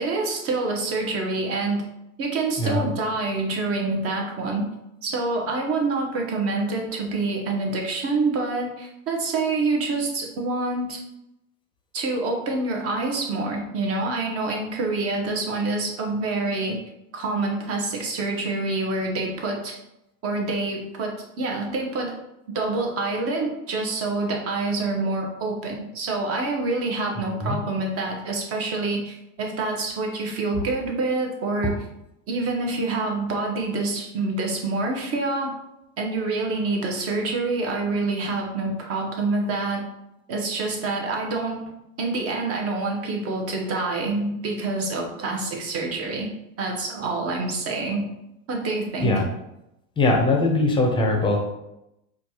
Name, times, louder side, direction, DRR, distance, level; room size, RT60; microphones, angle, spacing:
voice 1, 0.0-1.9 2.2-4.7 5.0-11.0 11.9-16.8 17.1-19.7 20.2-22.1 22.5-31.7 32.3-35.6 36.0-39.8 40.3-41.7 42.0-46.3 46.6-48.1 48.5-49.1, right 3 dB, 35° right, 1 dB, 0.9 m, -26 dB
voice 2, 50.0-51.4, left 2 dB, 15° left, 1 dB, 0.6 m, -21 dB
4.3 x 2.4 x 2.8 m, 0.86 s
supercardioid pair, 120°, 38 cm